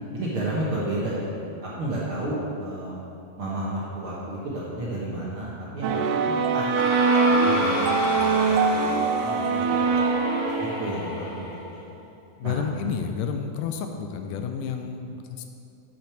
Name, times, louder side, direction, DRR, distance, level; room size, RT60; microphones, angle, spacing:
voice 1, 0.1-3.0 3.4-6.8 7.2-10.2 10.6-11.8 12.4-12.6, right 1 dB, 55° right, -7 dB, 1.5 m, -32 dB
sound 1, 5.8-11.0, right 4 dB, 80° right, 2.0 m, -23 dB
sound 2, 6.7-11.8, left 1 dB, 50° left, 2.0 m, -31 dB
voice 2, 12.4-15.4, left 6 dB, 80° left, 6 dB, 2.1 m, -30 dB
8.4 x 6.0 x 6.0 m, 2.7 s
omnidirectional pair, 3.9 m